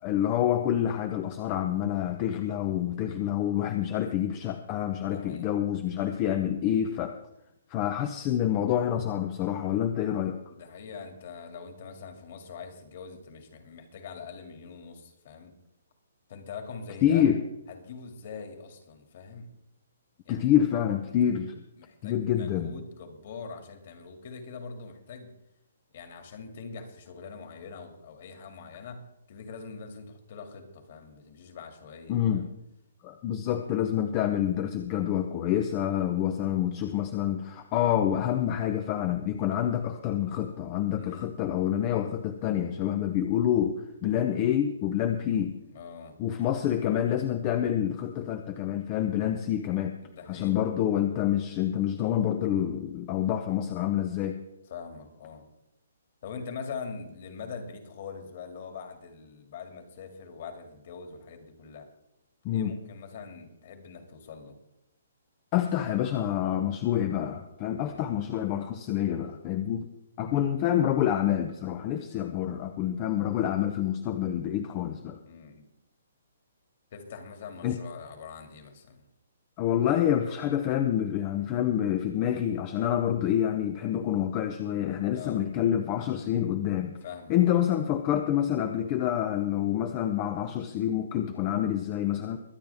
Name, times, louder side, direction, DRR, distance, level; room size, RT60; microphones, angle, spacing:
voice 1, 0.0-7.2 7.7-10.4 17.0-17.4 20.3-21.6 22.0-22.7 32.1-32.5 33.0-45.6 46.2-49.9 50.3-54.4 62.4-62.7 65.5-69.9 70.2-75.2 77.6-77.8 79.6-86.9 87.3-92.4, left 10 dB, 20° left, 8 dB, 0.6 m, -27 dB
voice 2, 5.0-5.5 10.5-15.5 16.3-17.3 17.7-19.5 20.2-20.5 21.1-21.3 21.8-25.3 25.9-32.5 40.9-41.3 45.7-46.2 46.5-46.6 50.0-50.5 54.7-55.4 56.2-61.9 62.5-64.6 67.8-68.1 70.2-70.5 75.2-75.7 76.9-79.0 85.1-85.4 87.0-87.6, left 5 dB, 40° left, 5 dB, 2.3 m, -43 dB
22.5 x 9.0 x 3.5 m, 0.85 s
hypercardioid pair, 170°, 0 cm